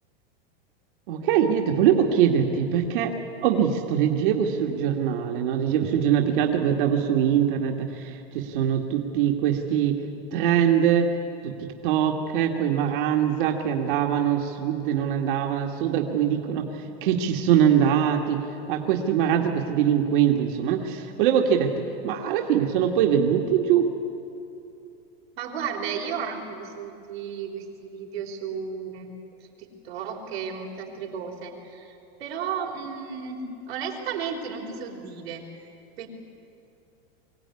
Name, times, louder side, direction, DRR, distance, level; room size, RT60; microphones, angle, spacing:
voice 1, 1.1-3.1 3.4-10.0 10.3-11.1 11.4-11.5 11.8-23.9, right 9 dB, 55° right, 2 dB, 1.9 m, -23 dB
voice 2, 25.4-29.1 29.4-35.7 36.0-36.1, right 6 dB, 85° right, 1 dB, 4.1 m, -34 dB
23.5 x 17.0 x 9.7 m, 2.7 s
supercardioid pair, 170°, 30 cm